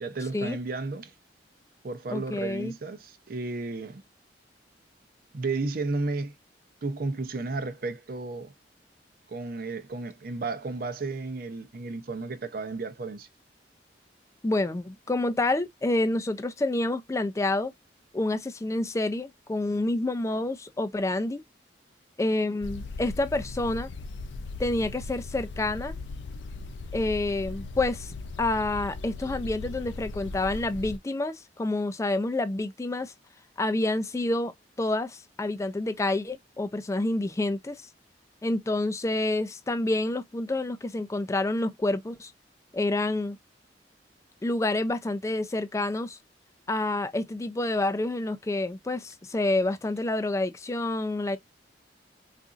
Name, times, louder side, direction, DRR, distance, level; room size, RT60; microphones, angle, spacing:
voice 1, 0.0-1.1 1.8-4.0 5.3-6.3 6.8-8.5 9.3-13.3, right 3 dB, 55° right, 0.6 m, -33 dB
voice 2, 2.1-2.7 14.4-17.7 18.1-21.4 22.2-23.9 24.6-25.9 26.9-33.1 33.6-34.5 34.8-37.8 38.4-42.3 42.7-43.4 44.4-46.2 46.7-51.4, left 2 dB, 15° left, 0.4 m, -28 dB
sound 1, 22.6-31.0, left 3 dB, 80° left, 0.4 m, -38 dB
3.9 x 2.5 x 2.3 m
head